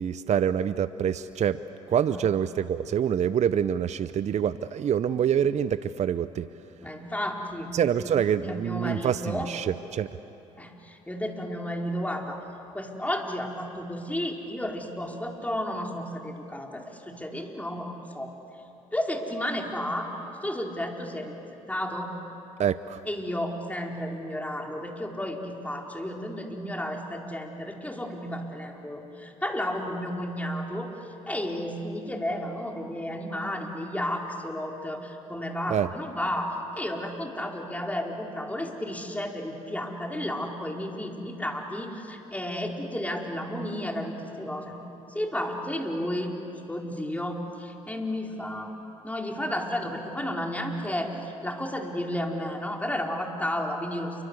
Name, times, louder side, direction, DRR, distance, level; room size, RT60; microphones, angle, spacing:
voice 1, 0.0-1.6 1.9-6.5 7.7-10.1 22.6-23.0 35.7-35.9, right 8 dB, 45° right, 14 dB, 0.7 m, -26 dB
voice 2, 6.8-7.7 8.4-9.5 10.6-12.4 12.7-18.3 18.9-20.1 20.4-21.3 21.7-22.1 23.1-30.9 31.3-44.8 45.1-46.3 46.7-48.8 49.0-54.2, left 1 dB, 10° left, 1 dB, 4.6 m, -32 dB
28.5 x 24.5 x 8.3 m, 2.9 s
hypercardioid pair, 60°, 16 cm